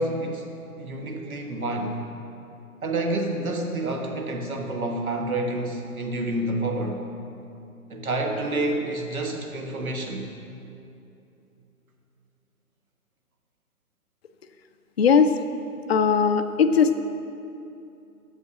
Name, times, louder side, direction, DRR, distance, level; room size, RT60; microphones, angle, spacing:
voice 1, 0.0-2.0 2.8-7.0 7.9-10.3, right 2 dB, 70° right, 3 dB, 1.5 m, -28 dB
voice 2, 15.0-15.3 15.9-17.0, left 6 dB, 45° left, 8 dB, 0.4 m, -19 dB
8.0 x 7.3 x 5.8 m, 2.8 s
figure-of-eight pair, 140°, 44 cm